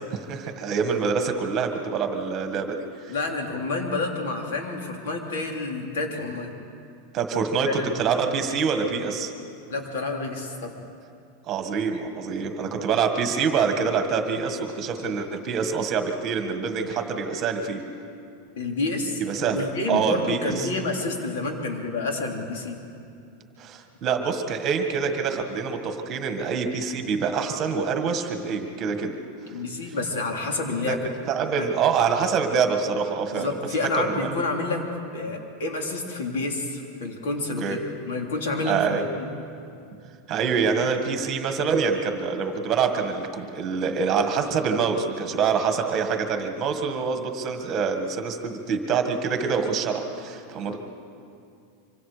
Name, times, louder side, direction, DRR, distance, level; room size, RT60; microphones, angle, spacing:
voice 1, 0.1-2.8 7.1-9.3 11.5-17.8 19.2-20.7 23.6-29.2 30.8-33.5 33.8-34.3 37.6-37.8 38.6-39.0 40.3-50.8, right 5 dB, 25° right, 5 dB, 1.6 m, -26 dB
voice 2, 3.1-6.5 7.7-7.9 9.7-10.7 18.6-22.8 29.5-31.0 31.6-31.7 33.3-34.8 35.1-39.3 50.6-50.8, left 3 dB, 85° left, 1 dB, 3.6 m, -29 dB
25.5 x 25.0 x 5.1 m, 2.5 s
supercardioid pair, 165°, 0 cm